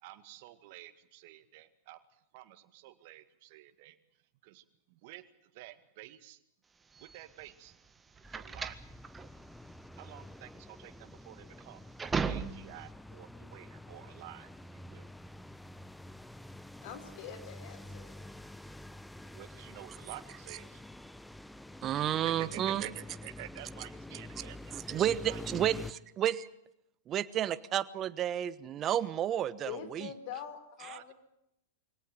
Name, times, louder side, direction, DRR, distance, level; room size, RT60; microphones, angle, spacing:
voice 1, 0.0-4.0 4.4-6.4 7.0-7.8 8.3-8.9 10.0-11.9 12.3-15.1 19.2-20.8 21.9-25.4 25.7-25.8 30.9-31.1, right 15 dB, 55° right, 10 dB, 2.1 m, -50 dB
sound 1, 6.9-12.9, right 5 dB, 15° right, 1.6 m, -38 dB
sound 2, 8.2-25.9, left 1 dB, 5° left, 0.9 m, -48 dB
voice 2, 16.8-18.2 29.6-31.1, left 8 dB, 55° left, 10 dB, 4.5 m, -44 dB
voice 3, 21.8-22.8 24.7-26.5 27.1-30.1, right 11 dB, 35° right, 16 dB, 1.3 m, -31 dB
24.0 x 18.0 x 9.4 m, 0.80 s
hypercardioid pair, 100°, 0 cm